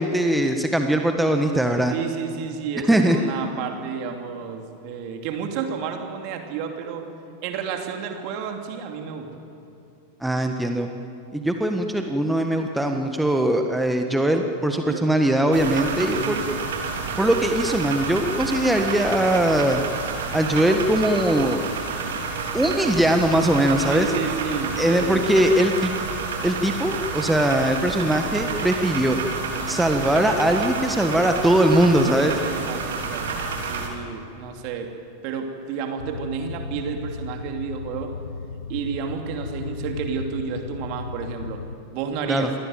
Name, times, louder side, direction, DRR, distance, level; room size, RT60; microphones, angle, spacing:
voice 1, 0.0-1.9 2.9-3.2 10.2-10.9 11.3-16.4 17.2-19.8 20.3-21.6 22.5-24.1 24.8-25.9 26.4-29.2 29.7-32.3 42.3-42.5, right 1 dB, 5° right, 4 dB, 1.5 m, -21 dB
voice 2, 1.9-7.0 7.4-9.4 14.9-15.0 16.1-16.6 23.8-25.2 32.2-34.9 35.2-38.1 38.7-41.6 41.9-42.5, right 6 dB, 45° right, 4 dB, 2.9 m, -31 dB
sound 1, 15.5-33.9, right 4 dB, 60° right, 3.7 m, -29 dB
sound 2, 36.0-41.8, left 4 dB, 70° left, 1.0 m, -35 dB
27.5 x 18.0 x 9.2 m, 2.6 s
figure-of-eight pair, 90°, 0 cm